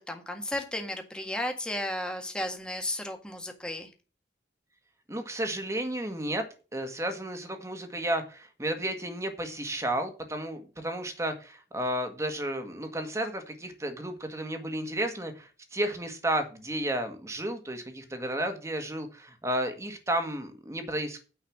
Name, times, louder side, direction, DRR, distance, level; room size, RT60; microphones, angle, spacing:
voice 1, 0.1-3.9, left 1 dB, 5° left, 3 dB, 1.7 m, -34 dB
voice 2, 5.1-6.5 6.7-21.2, right 1 dB, 15° right, 6 dB, 1.8 m, -32 dB
9.5 x 5.6 x 7.2 m, 0.34 s
head